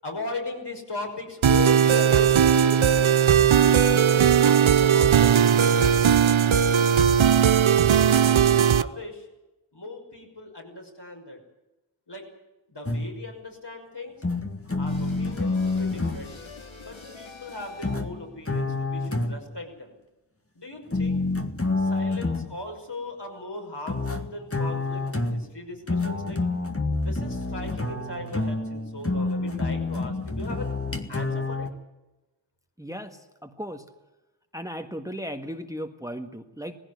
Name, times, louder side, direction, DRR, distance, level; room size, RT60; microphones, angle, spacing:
voice 1, 0.0-6.7 7.3-7.9 8.7-9.3 9.7-11.4 12.1-12.3 12.7-14.2 14.8-16.4 16.8-19.9 20.5-21.3 21.8-26.4 27.0-30.7 31.1-31.7, left 2 dB, 60° left, 1 dB, 6.0 m, -37 dB
sound 1, 1.4-8.8, right 8 dB, 85° right, 0.7 m, -18 dB
sound 2, 12.9-13.3 14.2-16.3 17.8-19.6 20.9-22.6 23.9-31.7, left 3 dB, 30° left, 2.0 m, -28 dB
sound 3, 14.9-18.3, left 4 dB, 80° left, 2.7 m, -45 dB
voice 2, 32.8-33.8 34.5-36.7, equal, 5° right, 6 dB, 1.7 m, -36 dB
19.0 x 16.0 x 9.7 m, 1.0 s
wide cardioid pair, 45°, 46 cm